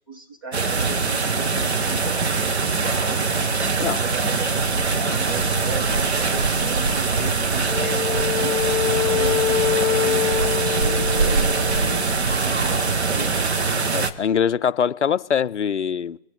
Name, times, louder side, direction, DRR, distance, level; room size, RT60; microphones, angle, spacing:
voice 1, 0.0-3.4 3.8-9.4 9.9-13.9, right 3 dB, 15° right, 0.7 m, -37 dB
sound 1, 0.5-14.1, right 4 dB, 55° right, 1.1 m, -22 dB
Wind instrument woodwind instrument, 7.7-12.1, left 11 dB, 20° left, 1.5 m, -25 dB
voice 2, 13.9-16.2, left 7 dB, 60° left, 0.5 m, -23 dB
24.0 x 9.0 x 4.5 m
figure-of-eight pair, 145°, 40 cm